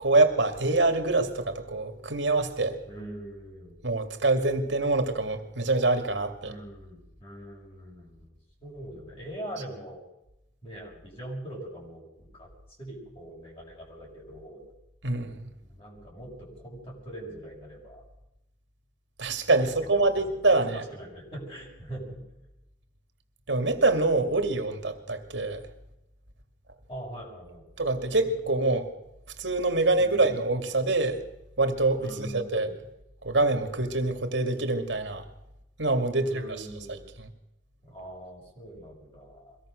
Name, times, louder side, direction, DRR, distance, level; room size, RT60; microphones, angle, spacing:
voice 1, 0.0-2.8 3.8-6.5 15.0-15.5 19.2-20.8 23.5-25.6 27.8-28.9 29.4-31.2 31.6-32.7 33.2-35.2 35.8-36.4 36.9-37.3, right 2 dB, 70° right, 2.5 m, -25 dB
voice 2, 2.9-3.7 6.4-8.3 8.6-10.0 10.6-12.5 12.8-14.6 15.6-18.0 20.0-22.2 24.5-24.6 26.9-27.6 28.2-28.3 30.0-30.3 32.0-32.9 36.1-37.0 37.8-39.6, right 1 dB, 30° left, 6.3 m, -42 dB
23.5 x 17.0 x 6.6 m
head